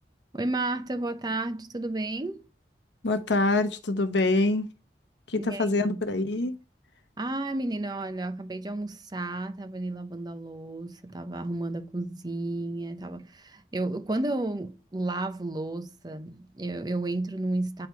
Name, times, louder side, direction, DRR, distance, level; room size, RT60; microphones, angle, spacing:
voice 1, 0.3-2.4 5.3-6.0 7.2-17.9, right 2 dB, 25° right, 0.7 m, -32 dB
voice 2, 3.0-4.7 5.3-6.6, left 2 dB, 90° left, 1.0 m, -25 dB
9.6 x 3.3 x 4.5 m
head